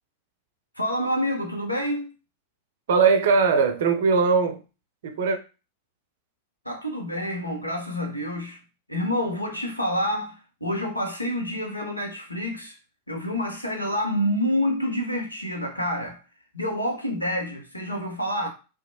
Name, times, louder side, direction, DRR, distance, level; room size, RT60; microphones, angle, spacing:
voice 1, 0.8-2.1 6.6-8.6 8.9-12.8 13.1-16.2 16.5-18.5, equal, 90° left, 0.7 m, -28 dB
voice 2, 2.9-4.6 5.0-5.4, right 5 dB, 55° right, 0.5 m, -20 dB
2.6 x 2.2 x 2.8 m
figure-of-eight pair, 90°, 0 cm